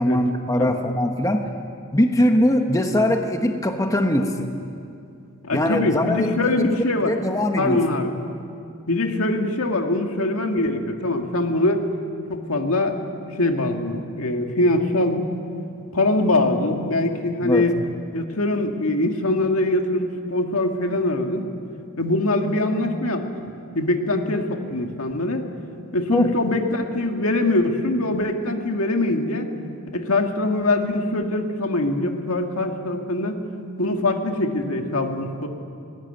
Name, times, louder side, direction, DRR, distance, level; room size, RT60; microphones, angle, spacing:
voice 1, 0.0-1.4 1.9-4.5 5.5-6.8 7.0-7.8 17.4-17.6 26.1-26.3, left 1 dB, 15° left, 5 dB, 1.1 m, -21 dB
voice 2, 5.4-7.1 7.6-8.2 8.9-11.8 12.3-13.1 13.4-15.2 15.9-17.8 18.1-21.5 22.0-23.3 23.7-25.4 25.9-29.5 29.9-33.4 33.8-35.5, left 2 dB, 80° left, 4 dB, 1.9 m, -23 dB
22.0 x 17.5 x 9.2 m, 2.5 s
head